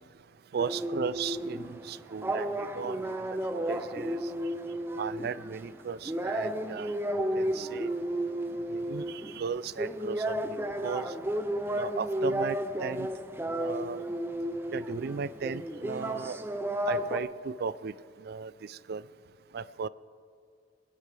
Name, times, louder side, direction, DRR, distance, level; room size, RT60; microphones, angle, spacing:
voice 1, 0.5-4.3 5.0-6.9 7.4-7.9 8.7-11.1 11.7-13.1 13.5-14.0 14.7-16.4 16.9-17.9 18.2-19.0 19.5-19.9, right 6 dB, 60° right, 17 dB, 0.4 m, -36 dB
sound 1, 0.6-17.2, right 1 dB, 15° right, 0.5 m, -33 dB
25.5 x 10.0 x 3.3 m, 2.2 s
head